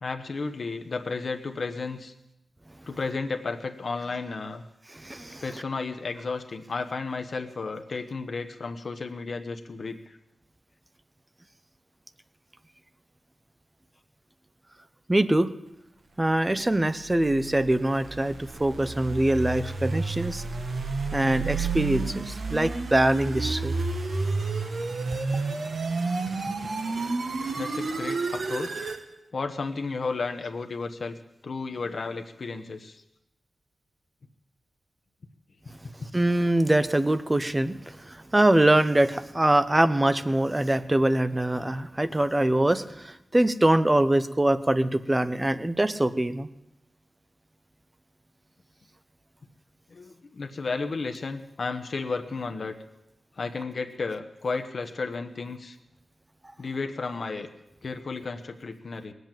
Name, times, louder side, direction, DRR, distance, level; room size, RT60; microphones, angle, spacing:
voice 1, 0.0-2.1 2.9-4.6 5.4-10.2 27.5-28.9 29.3-31.2 31.4-33.0 36.0-36.1 49.9-52.8 53.4-55.8 56.6-57.5 57.8-59.1, left 4 dB, 55° left, 6 dB, 1.1 m, -33 dB
voice 2, 4.9-5.4 15.1-15.5 16.2-20.4 21.1-23.7 36.1-46.5, right 1 dB, 15° right, 13 dB, 0.7 m, -23 dB
sound 1, 16.8-29.0, right 3 dB, 60° right, 1.3 m, -31 dB
19.5 x 8.0 x 9.0 m, 0.89 s
wide cardioid pair, 130°, 0 cm